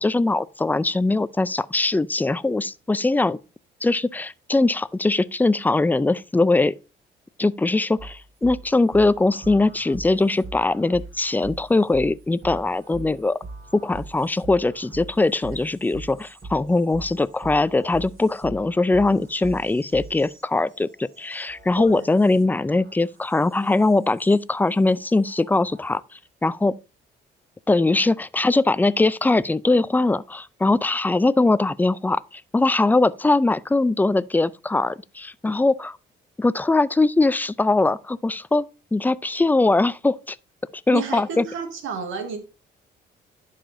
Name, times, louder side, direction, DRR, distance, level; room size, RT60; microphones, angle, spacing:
voice 1, 0.0-3.4 3.8-6.7 7.4-13.4 13.7-26.0 26.4-26.7 27.7-36.0 36.4-40.4 40.9-41.5, left 2 dB, 10° left, 0.4 m, -21 dB
sound 1, 8.0-24.4 24.7-26.0, right 3 dB, 50° right, 4.8 m, -42 dB
voice 2, 21.8-22.1 40.9-42.4, right 5 dB, 80° right, 2.1 m, -31 dB
11.5 x 5.0 x 2.6 m
cardioid pair, 90°, 20 cm